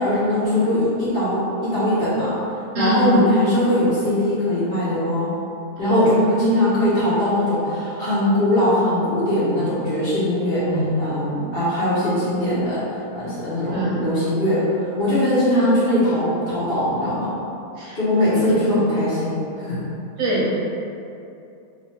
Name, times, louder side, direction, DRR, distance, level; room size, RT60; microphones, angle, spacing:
voice 1, 0.0-2.4 2.7-5.3 5.8-10.6 11.0-12.8 13.1-17.3 17.9-19.8, left 1 dB, 45° left, -11 dB, 0.8 m, -21 dB
voice 2, 13.7-14.1 17.8-18.5 20.2-20.5, right 1 dB, 65° right, -6 dB, 0.9 m, -24 dB
3.0 x 2.3 x 4.1 m, 2.7 s
omnidirectional pair, 1.6 m